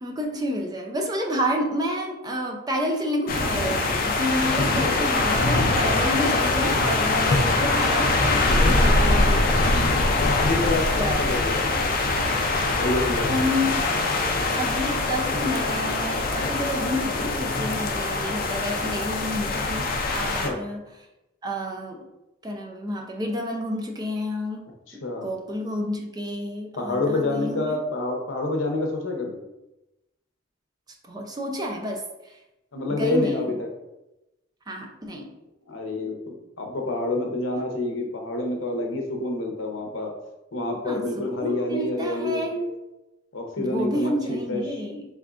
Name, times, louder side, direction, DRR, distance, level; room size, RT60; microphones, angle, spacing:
voice 1, 0.0-9.6 10.9-11.2 13.3-13.7 14.5-20.8 21.4-22.0 22.4-24.7 24.9-27.8 31.1-32.4 32.9-33.5 34.7-35.3 40.8-42.6 43.6-45.1, equal, 20° right, 1 dB, 0.5 m, -29 dB
sound 1, 3.3-20.5, left 2 dB, 50° left, 0.5 m, -23 dB
voice 2, 10.2-11.7 12.7-13.6 20.3-20.6 24.9-25.3 26.8-29.4 32.7-33.7 35.7-40.1 40.5-42.7 43.3-44.6, left 2 dB, 85° left, 2 dB, 0.7 m, -28 dB
3.7 x 3.4 x 2.4 m, 0.96 s
head